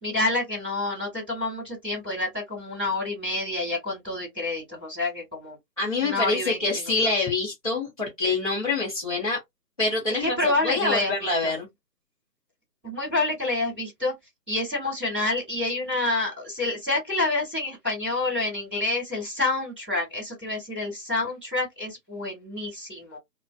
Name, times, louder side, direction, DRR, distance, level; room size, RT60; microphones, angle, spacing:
voice 1, 0.0-5.6 6.0-6.6 6.9-7.1 10.2-11.5 12.8-14.1 14.5-23.2, left 2 dB, 5° right, 1.1 m, -28 dB
voice 2, 5.8-9.4 9.8-11.7, left 3 dB, 20° left, 0.8 m, -26 dB
2.3 x 2.3 x 2.3 m
figure-of-eight pair, 165°, 49 cm